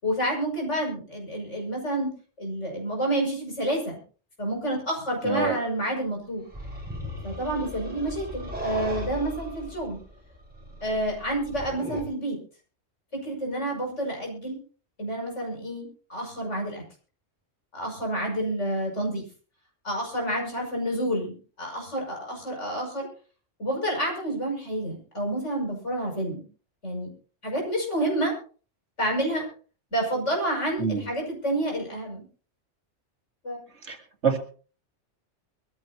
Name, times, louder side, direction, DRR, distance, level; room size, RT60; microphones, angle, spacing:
voice 1, 0.0-2.1 2.4-4.0 4.4-6.4 7.2-10.0 10.8-12.4 13.1-14.6 15.0-16.8 17.7-19.2 19.8-23.1 23.6-26.4 26.8-27.1 27.4-28.3 29.0-29.5 29.9-32.2 33.4-33.6, right 1 dB, 75° left, 0 dB, 6.4 m, -29 dB
voice 2, 5.2-5.6 30.8-31.0 33.9-34.0 34.2-34.4, right 5 dB, 65° right, 4 dB, 2.4 m, -25 dB
sound 1, 6.5-12.0, equal, 5° right, 6.1 m, -37 dB
23.0 x 14.5 x 2.8 m, 0.39 s
omnidirectional pair, 1.3 m